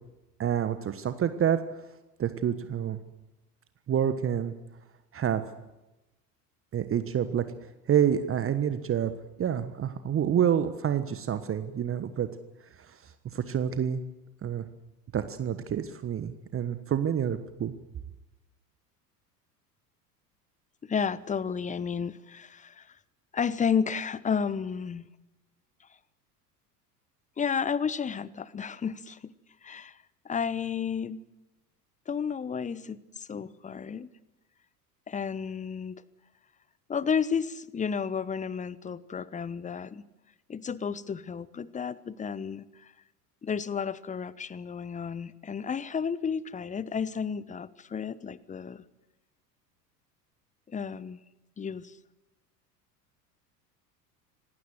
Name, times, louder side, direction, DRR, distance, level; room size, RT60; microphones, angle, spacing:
voice 1, 0.4-1.6 2.2-3.0 3.9-4.5 5.1-5.4 6.7-7.5 7.9-9.1 9.4-12.3 12.8-14.0 14.4-14.6 15.1-17.7, right 9 dB, 25° right, 11 dB, 1.4 m, -28 dB
voice 2, 20.9-22.9 23.3-25.1 27.4-29.3 29.6-30.0 30.2-31.2 32.1-34.1 35.1-35.9 36.9-40.0 40.5-42.9 43.4-48.8 50.7-51.2 51.6-51.9, left 6 dB, 15° left, 20 dB, 1.0 m, -32 dB
26.0 x 19.0 x 8.0 m, 1.0 s
figure-of-eight pair, 75°, 49 cm